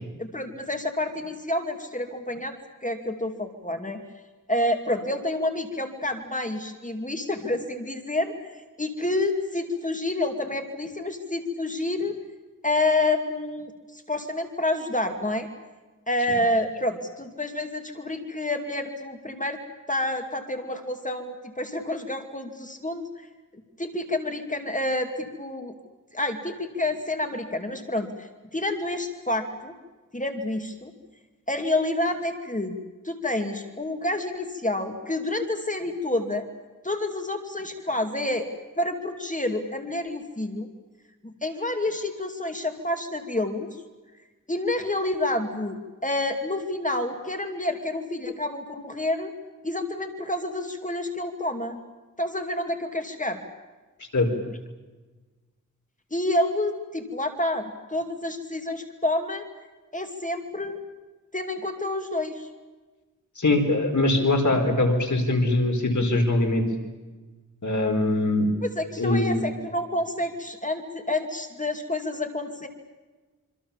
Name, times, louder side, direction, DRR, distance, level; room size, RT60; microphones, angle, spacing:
voice 1, 0.2-2.5 2.8-4.0 4.5-8.3 8.8-12.2 12.6-15.5 16.1-19.6 19.9-23.1 23.8-25.7 26.1-29.7 30.1-30.9 31.5-32.8 33.0-36.5 36.8-38.5 38.8-40.7 41.2-43.7 44.5-49.3 49.6-51.8 52.2-53.4 56.1-59.4 59.9-60.8 61.3-62.5 68.6-72.7, left 1 dB, 25° left, 5 dB, 2.5 m, -28 dB
voice 2, 63.4-66.6 67.6-68.5 69.0-69.4, left 2 dB, 65° left, 4 dB, 4.7 m, -22 dB
27.0 x 25.5 x 7.3 m, 1.2 s
wide cardioid pair, 75°, 32 cm